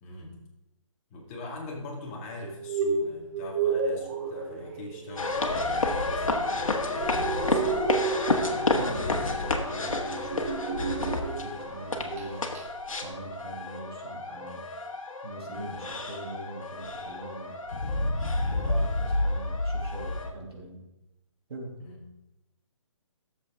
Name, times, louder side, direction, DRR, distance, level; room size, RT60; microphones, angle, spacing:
voice 1, 0.0-0.4 1.1-8.0 15.5-15.8 18.4-18.7 21.8-22.0, left 2 dB, 25° left, -2 dB, 2.1 m, -42 dB
sound 1, 2.4-11.7 12.0-12.3 12.6-12.7, right 4 dB, 25° right, 1.1 m, -32 dB
sound 2, 5.2-20.3, left 2 dB, 75° left, 1.6 m, -30 dB
voice 2, 8.5-12.5 13.0-14.6 15.2-17.6 18.5-20.8 21.5-21.7, right 2 dB, 50° right, -1 dB, 2.7 m, -42 dB
12.5 x 7.3 x 3.7 m, 0.92 s
figure-of-eight pair, 150°, 17 cm